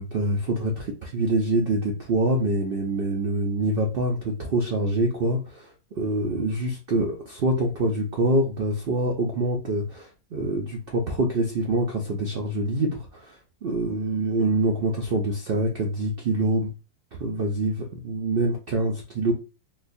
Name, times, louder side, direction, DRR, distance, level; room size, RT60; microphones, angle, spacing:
voice 1, 0.0-16.7 17.2-19.3, right 1 dB, 70° right, 1 dB, 0.5 m, -25 dB
4.0 x 2.3 x 2.6 m, 0.30 s
omnidirectional pair, 1.7 m